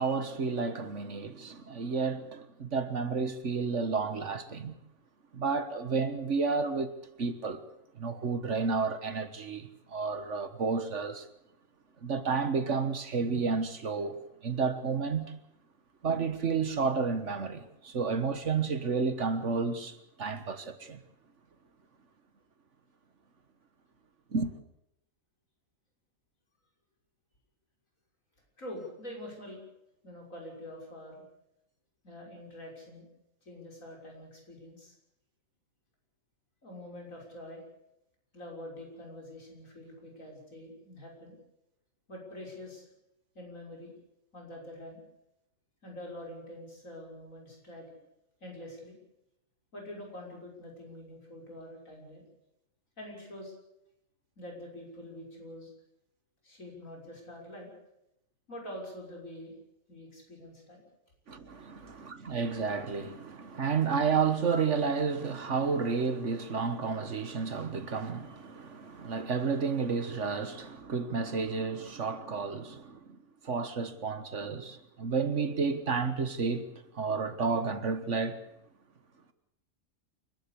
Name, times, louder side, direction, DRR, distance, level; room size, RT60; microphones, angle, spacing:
voice 1, 0.0-4.7 5.3-7.7 8.0-11.2 12.0-15.3 16.0-21.0 24.3-24.5 61.3-73.2 73.4-78.4, right 5 dB, 65° right, 1.7 m, -31 dB
voice 2, 28.6-29.6 30.0-31.2 32.0-33.1 33.4-34.9 36.6-37.6 38.3-41.4 42.1-42.8 43.3-43.9 44.3-45.0 45.8-47.9 48.4-49.0 49.7-52.2 53.0-53.5 54.4-55.7 56.4-57.7 58.5-59.6 59.9-60.8, left 1 dB, 80° left, 6.7 m, -45 dB
28.5 x 12.5 x 8.5 m
omnidirectional pair, 1.4 m